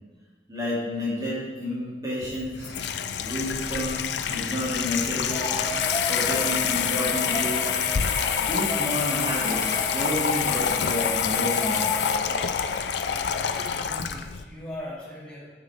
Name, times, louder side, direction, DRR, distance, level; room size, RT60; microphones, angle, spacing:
voice 1, 0.5-2.7 3.2-5.6 6.1-7.7 8.1-11.9, left 1 dB, 20° right, -7 dB, 2.8 m, -30 dB
Water tap faucet / Sink (filling or washing), 2.2-14.4, left 7 dB, 70° left, 0.5 m, -27 dB
sound 1, 5.3-12.5, left 1 dB, 25° left, 1.7 m, -33 dB
sound 2, 7.3-7.4 8.6-11.1, right 3 dB, 75° right, 2.3 m, -45 dB
voice 2, 13.3-15.5, left 1 dB, 5° left, -8 dB, 2.6 m, -39 dB
9.9 x 7.3 x 3.7 m, 1.3 s
head